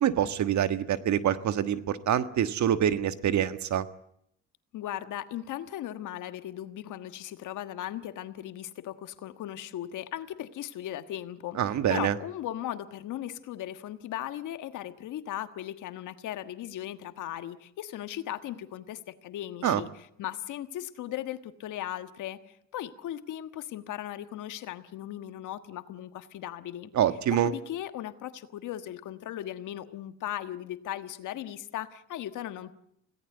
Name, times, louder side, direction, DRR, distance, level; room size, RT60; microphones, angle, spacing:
voice 1, 0.0-3.8 11.6-12.1 19.6-19.8 26.9-27.5, right 10 dB, 70° right, 11 dB, 1.5 m, -26 dB
voice 2, 4.7-11.6 11.9-19.9 20.2-26.9 27.4-32.7, left 12 dB, 85° left, 10 dB, 1.5 m, -37 dB
25.5 x 17.5 x 7.9 m, 0.73 s
cardioid pair, 90°, 30 cm